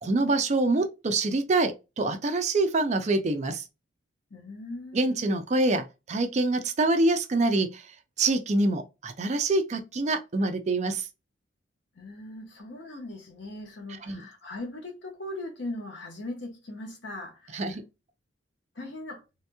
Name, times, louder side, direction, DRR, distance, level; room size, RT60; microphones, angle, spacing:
voice 1, 0.0-3.6 4.9-11.1 14.1-14.2 17.5-17.8, right 2 dB, 35° right, 0.4 m, -26 dB
voice 2, 4.3-5.2 11.9-17.8 18.7-19.2, left 2 dB, 60° left, 1.0 m, -39 dB
3.4 x 2.8 x 2.2 m
head